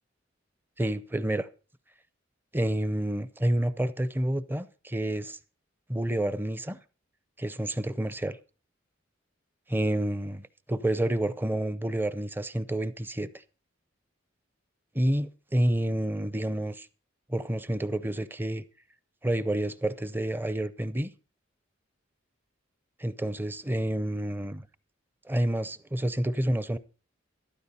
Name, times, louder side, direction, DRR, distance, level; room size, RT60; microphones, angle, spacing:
voice 1, 0.8-1.5 2.5-5.4 5.9-6.8 7.4-8.4 9.7-13.3 14.9-16.9 17.3-18.6 19.2-21.1 23.0-24.7 25.3-26.8, right 1 dB, 10° right, 0.5 m, -29 dB
13.5 x 12.0 x 4.2 m
head